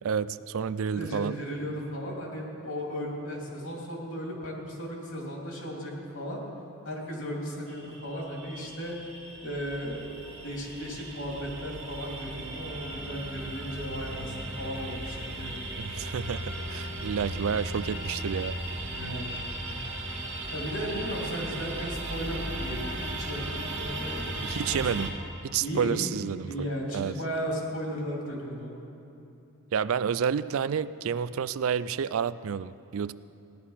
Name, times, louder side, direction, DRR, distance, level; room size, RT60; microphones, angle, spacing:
voice 1, 0.0-1.4 15.8-18.6 24.4-25.1 25.4-27.1 29.7-33.1, right 7 dB, 70° right, 16 dB, 0.4 m, -30 dB
voice 2, 0.9-6.4 6.8-9.0 9.4-10.2 10.4-15.6 18.9-19.4 20.5-24.4 24.7-24.8 25.6-26.0 26.5-28.8, equal, 65° left, -1 dB, 3.0 m, -35 dB
sound 1, 7.7-25.1, right 1 dB, 50° right, 2.0 m, -36 dB
16.5 x 11.0 x 5.7 m, 2.8 s
head